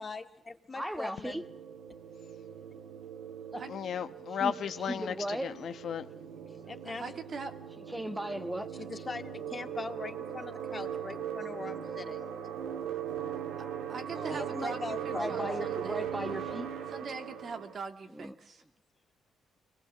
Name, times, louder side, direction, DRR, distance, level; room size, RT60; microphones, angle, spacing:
voice 1, 0.0-1.4 6.5-7.1 8.7-12.3 14.3-15.7, left 3 dB, 30° left, 7 dB, 1.9 m, -41 dB
voice 2, 0.7-1.4 3.5-3.7 4.3-5.6 7.0-7.1 7.9-8.8 14.1-14.5 15.1-16.7 18.1-18.3, right 1 dB, 5° right, 10 dB, 1.3 m, -37 dB
sound 1, 1.2-17.7, right 8 dB, 85° right, 2.0 m, -39 dB
voice 3, 3.7-5.1 5.4-6.0, left 8 dB, 65° left, 10 dB, 1.0 m, -34 dB
voice 4, 6.9-7.5 13.9-16.0 16.9-18.6, right 4 dB, 50° right, 5 dB, 2.3 m, -42 dB
24.0 x 19.5 x 7.7 m, 0.84 s
cardioid pair, 90°, 0 cm